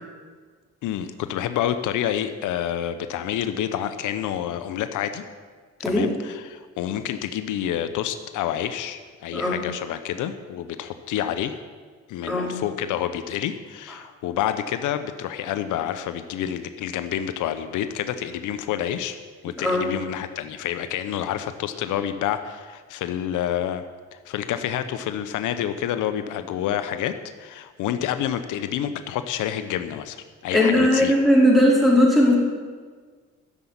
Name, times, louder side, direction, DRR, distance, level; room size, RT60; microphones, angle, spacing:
voice 1, 0.8-5.2 5.8-11.6 12.1-19.2 19.4-23.8 24.2-31.1, left 10 dB, 85° left, 10 dB, 0.8 m, -28 dB
voice 2, 30.5-32.3, left 1 dB, ahead, -4 dB, 4.7 m, -18 dB
12.0 x 7.2 x 9.4 m, 1.5 s
cardioid pair, 90°, 30 cm